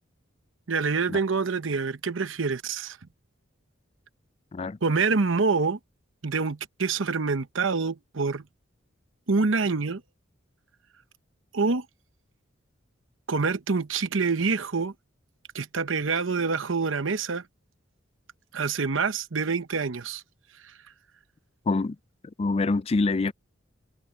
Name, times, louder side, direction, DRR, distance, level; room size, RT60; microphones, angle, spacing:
voice 1, 0.7-3.0 4.8-5.8 6.2-8.4 9.3-10.0 11.5-11.8 13.3-14.9 15.5-17.4 18.5-20.2, right 4 dB, 80° right, 0.9 m, -26 dB
voice 2, 21.7-22.0 22.4-23.3, left 3 dB, 30° left, 0.4 m, -25 dB
head